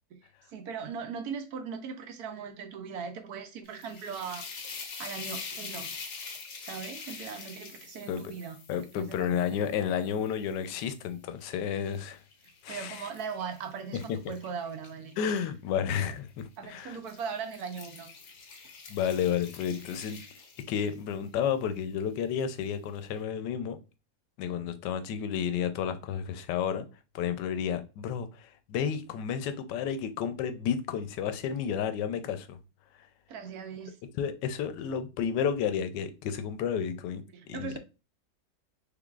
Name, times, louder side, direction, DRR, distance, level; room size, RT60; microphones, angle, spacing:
voice 1, 0.5-5.9 6.6-8.6 8.9-9.4 12.7-15.4 16.6-18.1 33.3-34.0 37.3-37.8, right 6 dB, 70° right, 1.1 m, -39 dB
sound 1, 3.6-10.9 11.4-15.4 16.3-16.6 16.9-21.1, left 5 dB, 55° left, 0.8 m, -45 dB
voice 2, 8.7-12.2 12.6-13.1 13.9-14.2 15.2-17.0 18.9-20.2 20.7-23.8 24.4-26.9 27.1-32.6 33.0-33.1 34.1-37.2 37.5-37.8, left 8 dB, 85° left, 1.2 m, -31 dB
3.8 x 3.3 x 2.3 m
omnidirectional pair, 1.8 m